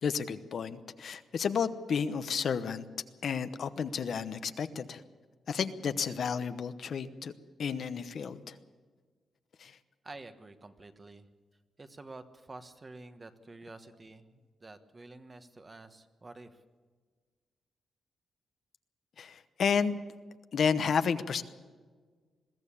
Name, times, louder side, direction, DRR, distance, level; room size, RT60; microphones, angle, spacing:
voice 1, 0.0-2.9 3.2-5.0 5.5-7.3 7.6-8.6 9.6-9.8 19.2-20.0 20.5-21.4, left 6 dB, 55° left, 11 dB, 0.9 m, -31 dB
voice 2, 10.0-11.3 11.8-16.6, right 2 dB, 25° right, 9 dB, 1.3 m, -49 dB
21.5 x 15.0 x 8.6 m, 1.5 s
cardioid pair, 130°, 0 cm